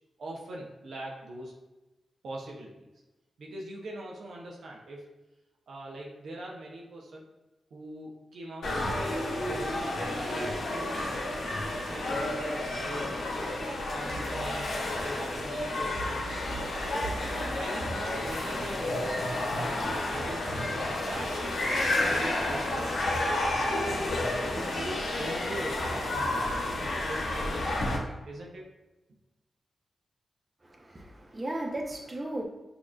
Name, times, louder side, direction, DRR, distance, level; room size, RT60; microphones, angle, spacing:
voice 1, 0.2-1.6 2.2-2.8 3.4-5.1 5.7-7.3 7.7-11.1 11.9-16.3 16.8-17.2 17.4-21.4 21.7-24.1 24.4-27.8 28.2-28.7, right 1 dB, 75° right, -2 dB, 0.7 m, -42 dB
sound 1, 8.6-28.0, left 1 dB, 85° left, 0.9 m, -31 dB
voice 2, 30.6-32.4, right 1 dB, 35° right, 0 dB, 0.9 m, -36 dB
6.3 x 2.9 x 2.4 m, 1.0 s
supercardioid pair, 40°, 0 cm